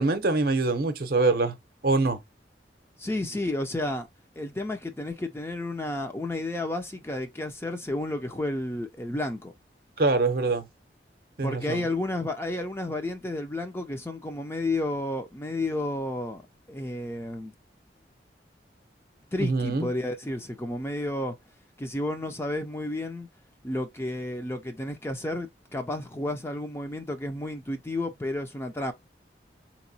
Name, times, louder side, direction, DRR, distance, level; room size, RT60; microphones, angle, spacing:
voice 1, 0.0-1.6 1.8-2.2 10.0-10.6 11.4-11.9 19.4-19.9, right 3 dB, 55° right, 0.7 m, -24 dB
voice 2, 3.0-4.1 4.4-9.5 11.4-16.4 16.7-17.5 19.3-21.3 21.8-23.3 23.6-28.9, left 1 dB, 15° left, 0.5 m, -31 dB
4.5 x 2.9 x 2.7 m
head